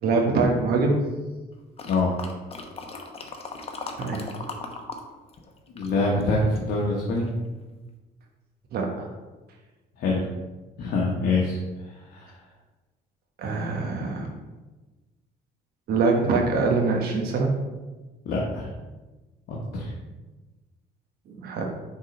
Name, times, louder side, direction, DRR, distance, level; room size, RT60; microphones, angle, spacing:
voice 1, 0.0-1.1 4.0-4.3 8.7-9.1 13.4-14.3 15.9-17.5 21.3-21.6, right 3 dB, 65° right, 1 dB, 1.1 m, -24 dB
sound 1, 1.8-5.0 5.3-6.7 7.3-7.4, left 3 dB, 35° left, 0.9 m, -37 dB
voice 2, 5.7-7.3 10.0-10.3 10.8-11.6 11.8-12.3 18.2-18.7 19.5-19.9, left 3 dB, 65° left, -3 dB, 1.2 m, -25 dB
6.3 x 3.8 x 5.2 m, 1.2 s
cardioid pair, 110°, 17 cm